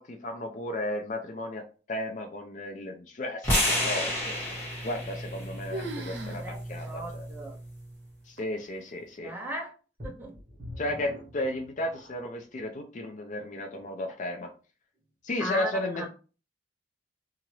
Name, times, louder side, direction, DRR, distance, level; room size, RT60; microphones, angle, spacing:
voice 1, 0.0-1.6 1.9-4.4 4.8-7.2 8.3-9.3 10.8-14.5 15.2-16.1, left 1 dB, 45° left, 3 dB, 0.4 m, -34 dB
sound 1, 3.4-7.6, left 1 dB, 15° left, 1.4 m, -31 dB
sound 2, 5.0-5.4 5.7-6.4 6.8-6.9 7.5-7.6 8.4-8.8, right 1 dB, 70° right, 0.8 m, -38 dB
voice 2, 6.2-7.6 9.2-9.7 10.0-10.4 15.4-16.1, right 1 dB, 10° right, 1 dB, 0.5 m, -37 dB
sound 3, 10.0-12.4 13.1-13.2 13.8-13.9, equal, 45° right, 1.2 m, -44 dB
2.8 x 2.5 x 3.0 m, 0.35 s
head